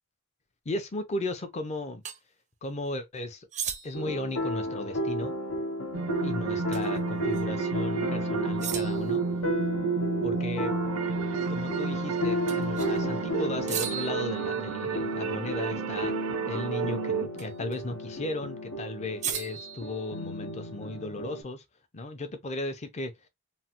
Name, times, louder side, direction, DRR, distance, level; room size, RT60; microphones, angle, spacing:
voice 1, 0.7-2.0 2.6-3.5 3.8-5.3 6.2-9.2 10.2-10.8 11.5-16.1 16.5-21.6 21.9-23.1, left 2 dB, 35° left, 0.5 m, -35 dB
sound 1, 2.0-2.2 3.5-4.2 6.7-7.0 7.3-7.4 8.6-9.2 12.5-13.0 13.7-15.1 17.4-17.8 19.2-20.6, right 8 dB, 35° right, 0.4 m, -37 dB
sound 2, 3.9-21.4, left 1 dB, 80° left, 0.9 m, -34 dB
sound 3, 5.9-17.3, right 5 dB, 85° right, 0.5 m, -31 dB
3.1 x 2.1 x 2.8 m
head